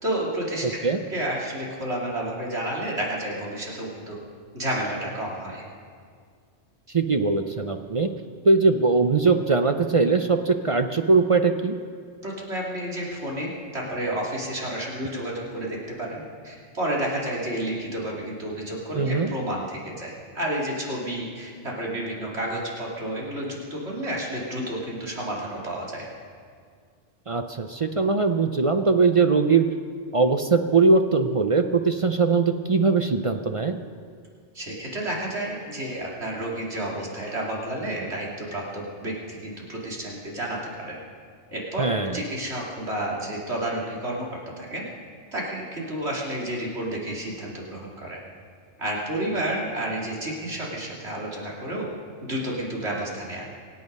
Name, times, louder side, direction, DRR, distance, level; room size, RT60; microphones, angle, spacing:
voice 1, 0.0-4.2 4.5-5.6 12.2-26.1 34.5-41.0 41.5-44.3 44.6-44.8 45.3-48.2 48.8-51.9 52.2-53.5, right 1 dB, 65° right, -4 dB, 3.0 m, -31 dB
voice 2, 0.6-1.0 6.9-8.1 8.4-11.8 19.0-19.3 27.3-29.6 30.1-33.8 41.8-42.2, right 4 dB, 40° right, 7 dB, 0.5 m, -21 dB
24.5 x 8.6 x 5.3 m, 2.1 s
omnidirectional pair, 1.2 m